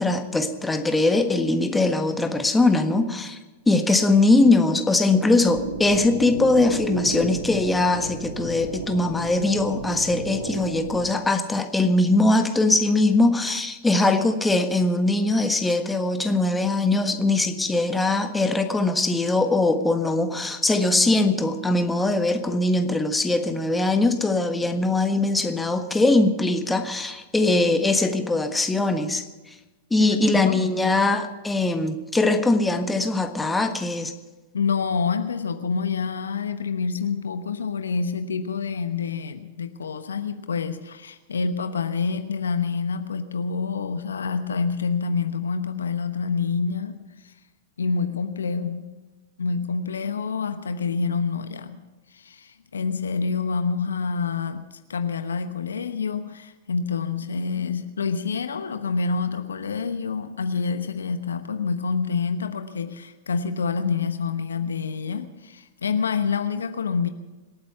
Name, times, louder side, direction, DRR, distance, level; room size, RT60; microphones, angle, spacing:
voice 1, 0.0-3.4 3.7-29.2 29.9-34.1, left 2 dB, 10° left, 6 dB, 1.5 m, -21 dB
sound 1, 5.4-11.1, right 3 dB, 70° right, 2.1 m, -33 dB
voice 2, 30.2-30.7 34.5-47.3 47.8-48.8 49.4-51.8 52.1-54.6 54.9-67.1, left 5 dB, 75° left, 9 dB, 1.0 m, -27 dB
26.0 x 8.8 x 5.8 m, 1.2 s
figure-of-eight pair, 100°, 0 cm